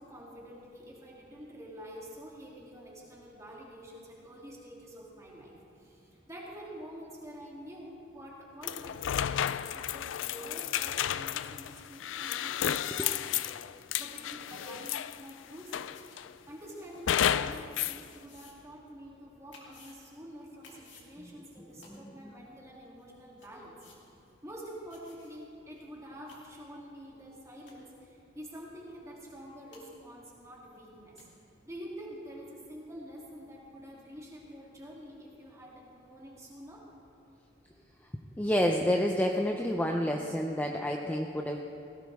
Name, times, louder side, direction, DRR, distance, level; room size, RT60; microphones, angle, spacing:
voice 1, 0.0-15.9 16.5-24.1 24.4-31.3 31.7-36.9, equal, 15° right, -4 dB, 2.9 m, -47 dB
sound 1, 8.6-15.3 15.7-16.3 17.1-18.0, left 10 dB, 85° left, 0.4 m, -32 dB
sound 2, 14.0-14.2 14.8-14.9 15.9-16.2 17.0-17.1 18.0-18.5 18.9-19.0 19.5-20.0 20.6-21.1 21.8-21.9 22.6-22.7 23.0-23.1 23.4-23.5 23.8-24.0 24.3-24.4 24.9-25.3 25.7-25.8 26.1-26.4 27.3-27.4 27.7-27.9 29.3-29.4 29.7-29.8 30.7-30.8 31.2-31.3, left 4 dB, 70° left, 2.7 m, -56 dB
voice 2, 38.4-41.6, equal, 10° left, 2 dB, 0.6 m, -29 dB
18.5 x 16.5 x 3.6 m, 2.7 s
head